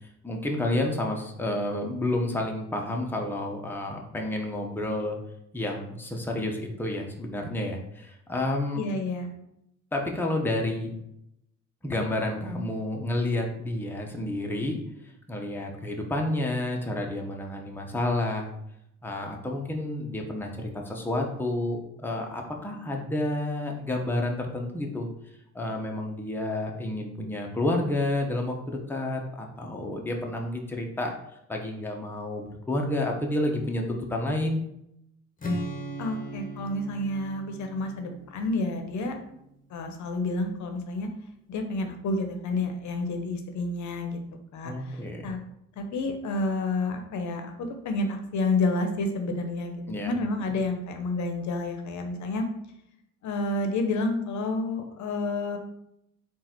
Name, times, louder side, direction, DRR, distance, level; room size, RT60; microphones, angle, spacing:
voice 1, 0.2-5.2 5.5-8.8 9.9-10.9 11.8-14.8 15.3-18.5 19.0-25.1 25.5-31.1 31.5-34.6 44.6-45.2 49.9-50.1, left 1 dB, 5° left, 0 dB, 0.7 m, -30 dB
voice 2, 8.7-9.3 36.0-39.2 39.7-41.1 41.5-44.2 44.5-45.4 45.8-52.5 53.2-55.6, left 2 dB, 70° left, 5 dB, 0.7 m, -29 dB
Strum, 35.4-39.5, equal, 25° left, 1.0 m, -37 dB
3.9 x 2.5 x 4.3 m, 0.79 s
cardioid pair, 90°, 30 cm